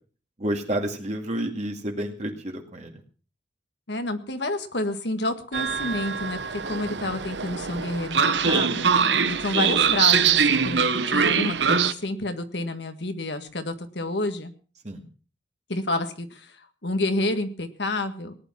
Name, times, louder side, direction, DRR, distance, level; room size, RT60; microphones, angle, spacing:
voice 1, 0.4-3.0 7.0-7.1 14.8-15.0, right 1 dB, 40° right, 2 dB, 2.2 m, -30 dB
voice 2, 3.9-8.9 9.3-14.5 15.7-18.4, left 2 dB, 70° left, 8 dB, 1.7 m, -29 dB
Train, 5.5-11.9, right 6 dB, 75° right, 1.1 m, -23 dB
18.5 x 10.0 x 5.9 m, 0.39 s
head